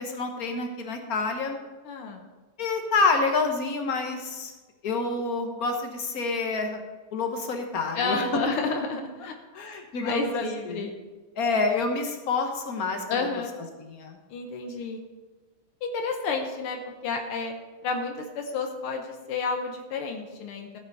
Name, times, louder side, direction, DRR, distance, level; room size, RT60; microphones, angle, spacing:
voice 1, 0.0-1.6 2.6-4.5 4.8-6.8 7.1-8.4 9.5-10.9 11.4-13.3 13.8-14.2, left 3 dB, 50° left, 4 dB, 1.4 m, -28 dB
voice 2, 1.9-2.2 8.0-9.3 10.0-11.0 13.1-13.6 14.3-15.0 15.8-17.5 17.8-20.8, left 4 dB, 85° left, 4 dB, 1.9 m, -30 dB
14.0 x 7.9 x 4.0 m, 1.2 s
omnidirectional pair, 2.3 m